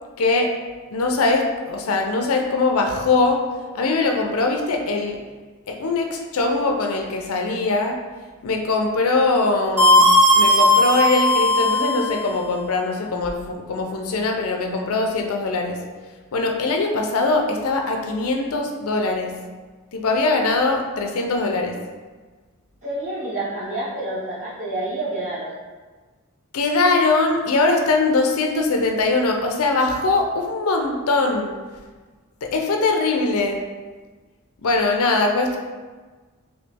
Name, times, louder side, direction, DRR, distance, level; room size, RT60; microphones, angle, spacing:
voice 1, 0.2-0.5 0.9-3.4 3.7-5.2 5.7-8.0 8.4-10.1 10.3-15.8 16.3-19.3 19.9-21.8 26.5-31.6 32.4-33.6 34.6-35.6, left 3 dB, 70° left, 3 dB, 0.5 m, -21 dB
sound 1, 9.8-12.1, left 1 dB, 10° right, 0.7 m, -16 dB
voice 2, 22.8-25.5, right 2 dB, 40° right, -15 dB, 1.3 m, -28 dB
3.1 x 2.8 x 3.3 m, 1.4 s
head